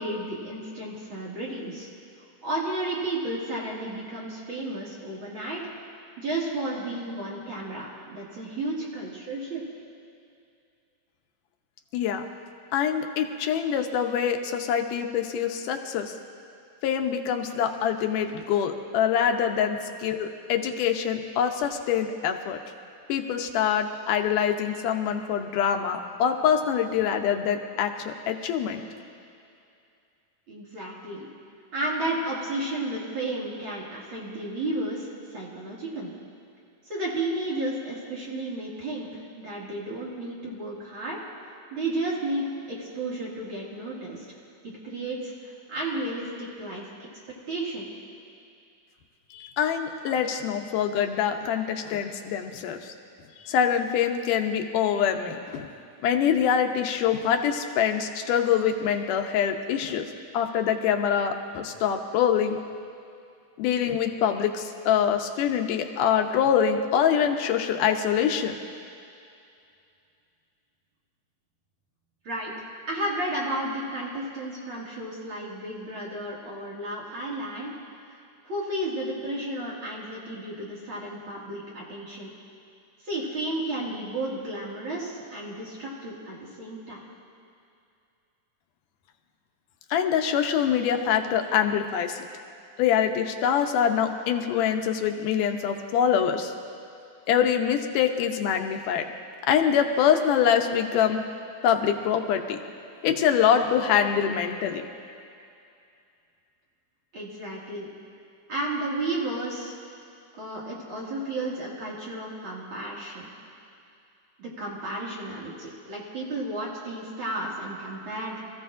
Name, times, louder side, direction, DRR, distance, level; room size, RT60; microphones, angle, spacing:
voice 1, 0.0-1.9 2.4-5.6 6.2-9.6 30.5-31.3 31.7-36.1 36.9-41.2 41.7-44.3 44.6-47.1 47.5-47.9 72.2-72.5 72.9-77.8 78.4-82.3 83.0-87.0 107.1-107.9 108.5-109.7 110.3-113.3 114.4-118.4, right 1 dB, 40° right, -5 dB, 2.7 m, -33 dB
voice 2, 11.9-12.3 12.7-16.1 16.8-22.6 23.1-28.8 49.3-52.8 53.5-55.7 56.0-60.1 60.3-62.6 63.6-68.5 89.9-92.2 92.8-96.5 97.3-99.0 99.5-101.2 101.6-102.6 103.0-104.8, left 8 dB, 85° left, 5 dB, 2.4 m, -24 dB
26.0 x 15.0 x 2.5 m, 2.5 s
omnidirectional pair, 3.6 m